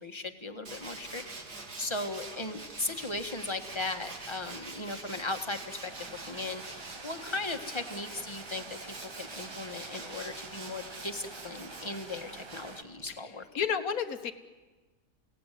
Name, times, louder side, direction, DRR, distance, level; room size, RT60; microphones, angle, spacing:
voice 1, 0.0-13.6, left 2 dB, 15° left, 5 dB, 1.5 m, -38 dB
Tools, 0.7-13.2, right 3 dB, 70° right, 3.0 m, -45 dB
sound 1, 5.9-12.8, right 3 dB, 30° right, 0.5 m, -48 dB
voice 2, 13.6-14.3, left 7 dB, 60° left, 9 dB, 1.7 m, -31 dB
29.0 x 17.5 x 9.3 m, 1.3 s
omnidirectional pair, 1.7 m